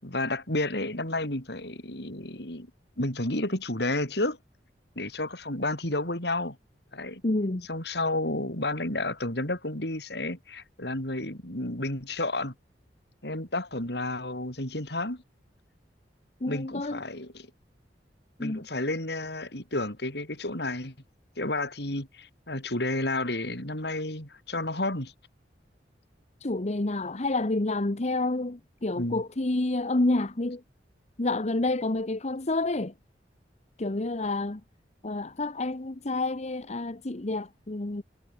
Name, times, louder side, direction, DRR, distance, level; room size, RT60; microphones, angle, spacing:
voice 1, 0.0-2.7 3.0-4.4 4.9-6.6 6.9-7.2 7.7-12.5 13.2-15.2 16.5-17.5 18.4-20.9 21.4-25.1 28.9-29.2, left 2 dB, 70° left, 6.7 m, -31 dB
voice 2, 7.2-7.7 16.4-17.0 18.4-18.7 26.4-30.6 31.2-32.9 33.8-34.6 35.0-38.0, left 2 dB, 40° left, 1.1 m, -29 dB
head